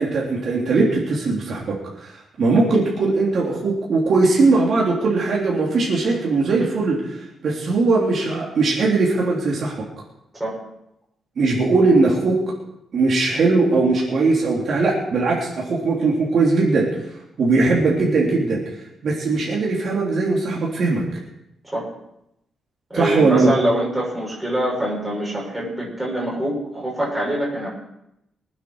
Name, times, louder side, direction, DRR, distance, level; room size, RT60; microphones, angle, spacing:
voice 1, 0.0-2.1 2.4-9.7 11.4-12.4 12.9-16.9 17.4-18.6 19.0-21.0 22.9-23.5, right 3 dB, 50° right, -4 dB, 3.4 m, -19 dB
voice 2, 22.9-27.7, right 1 dB, 5° right, -5 dB, 6.2 m, -24 dB
24.5 x 9.2 x 4.8 m, 0.81 s
wide cardioid pair, 170°, 0 cm